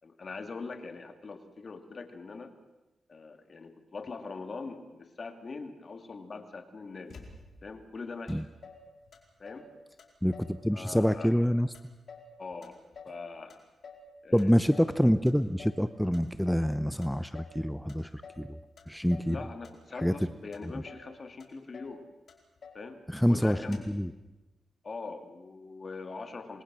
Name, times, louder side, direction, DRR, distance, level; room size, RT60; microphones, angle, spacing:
voice 1, 0.0-2.6 3.1-7.2 7.6-8.5 9.4-9.7 10.7-11.3 12.4-12.8 13.0-13.6 14.2-14.6 19.2-22.1 22.7-23.9 24.8-26.6, left 4 dB, 45° left, 6 dB, 2.5 m, -42 dB
Motor vehicle (road), 7.1-7.8 8.3-8.4 8.6-9.7 10.0-10.6 10.9-11.5 11.7-13.2 13.5-14.1 14.4-15.0 15.3-15.8 16.1-16.7 17.0-17.6 17.9-18.5 18.8-19.4 19.6-20.2 20.5-21.1 21.4-21.5 21.7-22.0 22.3-22.9 23.2-23.3 23.5-24.0, left 4 dB, 60° left, 4.7 m, -50 dB
voice 2, 10.2-11.7 14.3-18.6 18.9-19.4 20.0-20.1 23.1-24.1, equal, ahead, 11 dB, 0.7 m, -26 dB
27.0 x 21.0 x 6.2 m, 1.1 s
cardioid pair, 80°, 0 cm